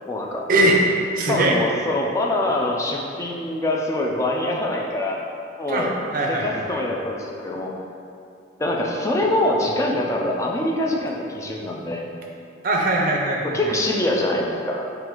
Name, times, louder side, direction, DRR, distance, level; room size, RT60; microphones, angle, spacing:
voice 1, 0.1-0.4 1.3-5.2 5.6-5.9 6.3-7.7 8.6-12.1 13.5-14.9, left 1 dB, 15° left, -2 dB, 0.3 m, -24 dB
voice 2, 1.1-1.6 5.7-6.8 12.6-13.7, right 2 dB, 45° right, -1 dB, 0.5 m, -21 dB
3.9 x 2.5 x 4.4 m, 2.5 s
head